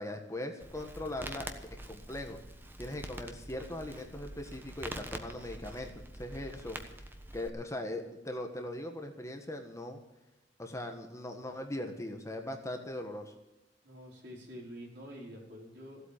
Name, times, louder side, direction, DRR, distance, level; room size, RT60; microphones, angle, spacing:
voice 1, 0.0-2.4 2.8-6.8 7.3-10.0 10.6-13.3, left 1 dB, 15° left, 4 dB, 1.5 m, -40 dB
Crackle, 0.6-7.5, right 1 dB, 10° right, 1.2 m, -45 dB
voice 2, 13.8-16.0, equal, 65° right, -2 dB, 5.2 m, -47 dB
15.5 x 8.4 x 8.6 m, 1.0 s
head